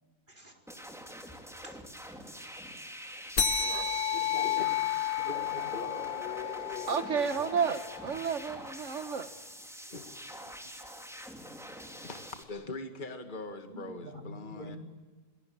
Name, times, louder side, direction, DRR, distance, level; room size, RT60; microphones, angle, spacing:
sound 1, 0.7-12.4, equal, ahead, 3.2 m, -45 dB
voice 1, 1.5-1.8 3.6-4.7 5.2-6.0 8.2-8.3 13.7-14.8, equal, 30° right, 4.8 m, -45 dB
sound 2, 3.4-8.3, left 8 dB, 60° left, 2.1 m, -32 dB
voice 2, 5.7-7.5 9.9-10.5 10.8-11.0 11.8-14.8, left 3 dB, 30° left, 2.1 m, -43 dB
voice 3, 6.9-9.4, right 6 dB, 55° right, 1.7 m, -31 dB
27.5 x 22.5 x 8.8 m
omnidirectional pair, 1.6 m